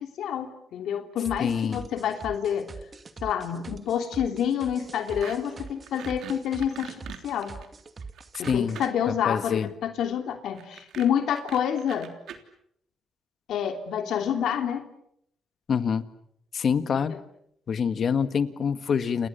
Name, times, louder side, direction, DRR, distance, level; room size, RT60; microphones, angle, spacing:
voice 1, 0.2-2.7 3.2-6.9 7.2-7.6 8.4-12.1 13.5-14.8 16.9-17.2, left 9 dB, 75° left, 6 dB, 3.1 m, -28 dB
sound 1, 1.2-8.9, right 4 dB, 35° right, 2.3 m, -43 dB
voice 2, 1.4-1.9 8.4-8.8 9.3-9.7 15.7-16.0 16.5-17.2 17.7-19.3, left 6 dB, 50° left, 11 dB, 1.8 m, -26 dB
sound 2, 5.1-5.4 5.6-9.1 10.6-12.4, right 9 dB, 75° right, 3.2 m, -42 dB
30.0 x 28.5 x 6.9 m, 0.75 s
cardioid pair, 90°, 0 cm